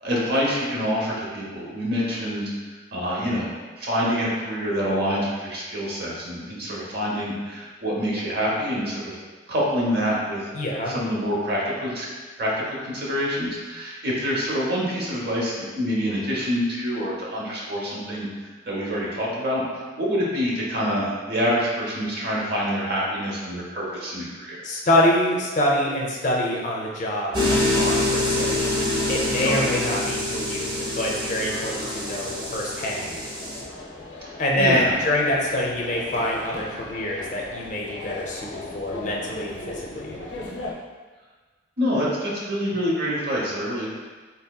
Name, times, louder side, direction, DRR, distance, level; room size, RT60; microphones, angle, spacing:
voice 1, 0.0-2.4 2.9-3.5 3.8-9.2 9.5-10.4 10.9-12.1 12.4-18.3 18.7-19.6 20.0-24.6 29.4-29.5 34.6-34.9 41.8-43.9, equal, 55° right, -5 dB, 0.8 m, -26 dB
voice 2, 10.5-11.0 24.6-28.6 29.1-33.2 34.4-40.2, left 1 dB, 40° left, -3 dB, 0.5 m, -25 dB
sound 1, 27.3-33.6, left 1 dB, 25° right, 0.6 m, -25 dB
sound 2, 31.4-40.7, left 2 dB, 90° left, 0.5 m, -38 dB
4.0 x 2.7 x 2.2 m, 1.4 s
head